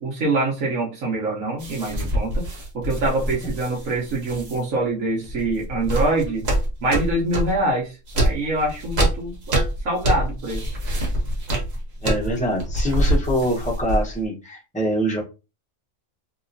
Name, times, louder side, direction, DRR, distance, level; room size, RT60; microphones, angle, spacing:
voice 1, 0.0-2.5 2.7-6.5 6.8-9.6 9.8-10.8, right 2 dB, 75° right, -2 dB, 1.3 m, -25 dB
sound 1, 1.6-4.6 5.2-7.6 8.1-14.2, right 1 dB, 55° right, 1.3 m, -25 dB
voice 2, 12.0-15.2, equal, 5° left, -3 dB, 1.0 m, -24 dB
3.0 x 2.9 x 2.6 m, 0.29 s
omnidirectional pair, 1.4 m